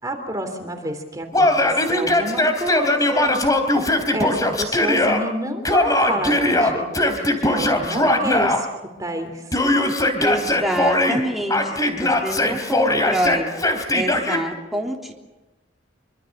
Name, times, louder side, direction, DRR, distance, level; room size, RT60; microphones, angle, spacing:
voice 1, 0.0-3.5 4.1-8.7 9.0-9.7, right 1 dB, 20° right, 5 dB, 3.3 m, -29 dB
Yell, 1.3-5.2 5.7-8.6 9.5-11.2 11.5-14.4, left 1 dB, 20° left, 3.5 m, -20 dB
voice 2, 10.2-13.5 13.9-15.1, right 1 dB, ahead, -2 dB, 3.4 m, -26 dB
26.5 x 25.0 x 6.7 m, 1.1 s
head